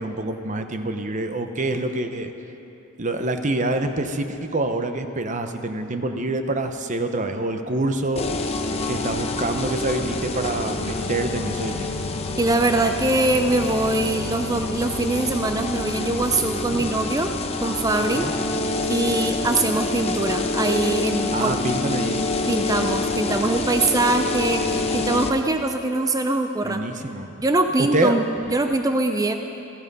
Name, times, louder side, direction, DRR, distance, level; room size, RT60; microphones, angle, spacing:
voice 1, 0.0-2.3 3.0-8.3 8.9-12.0 16.7-16.9 18.1-18.3 21.3-22.3 26.6-27.3 27.9-28.2, right 2 dB, 35° right, 7 dB, 0.9 m, -26 dB
sound 1, 8.2-25.3, left 3 dB, 30° left, 0.9 m, -27 dB
voice 2, 12.4-17.3 17.6-18.3 18.9-21.6 22.5-24.7 24.9-26.8 27.4-29.3, right 2 dB, 15° right, 6 dB, 0.5 m, -22 dB
16.0 x 15.5 x 5.4 m, 2.9 s
head